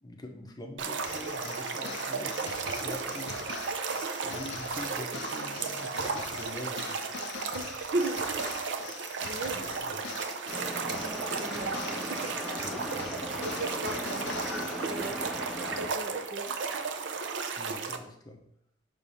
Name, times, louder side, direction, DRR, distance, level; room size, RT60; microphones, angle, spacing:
voice 1, 0.0-3.4 4.2-7.1 9.5-10.1 12.6-12.9 17.6-18.4, left 1 dB, 20° left, 3 dB, 0.7 m, -44 dB
sound 1, 0.8-18.0, right 5 dB, 85° right, 0.6 m, -35 dB
sound 2, 1.0-15.1, left 6 dB, 70° left, 0.5 m, -43 dB
voice 2, 7.5-8.2 9.2-9.7 11.0-12.2 13.0-13.1 13.4-15.2 15.8-16.6, right 2 dB, 50° right, 5 dB, 0.7 m, -36 dB
sound 3, 10.5-15.9, equal, ahead, 1.0 m, -38 dB
6.7 x 3.1 x 5.5 m, 0.72 s
head